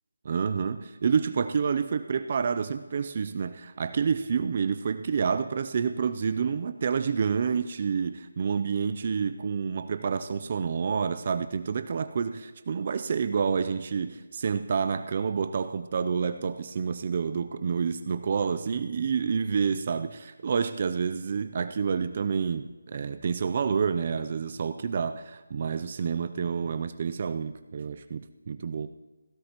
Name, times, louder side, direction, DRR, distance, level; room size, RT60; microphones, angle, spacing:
voice 1, 0.2-28.9, right 6 dB, 30° right, 10 dB, 0.4 m, -28 dB
16.5 x 15.5 x 2.9 m, 1.3 s
figure-of-eight pair, 175°, 0 cm